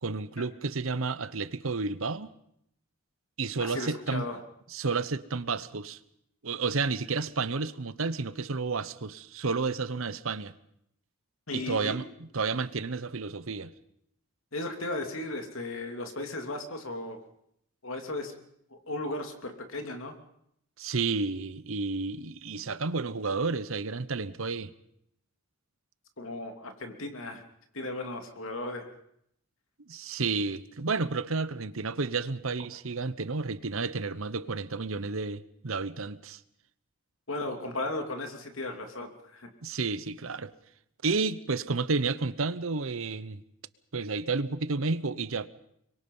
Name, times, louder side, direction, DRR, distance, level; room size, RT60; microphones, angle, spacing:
voice 1, 0.0-2.3 3.4-4.2 4.7-6.0 6.4-10.5 11.5-12.1 12.3-13.7 20.8-24.7 29.9-36.4 39.6-40.5 41.0-43.4 43.9-45.5, right 4 dB, 70° right, 0.9 m, -31 dB
voice 2, 3.6-4.4 11.5-12.0 14.5-17.2 17.8-18.3 18.7-20.2 26.2-27.4 27.7-28.9 37.3-39.5, left 2 dB, 70° left, 2.9 m, -36 dB
25.0 x 22.5 x 5.6 m
head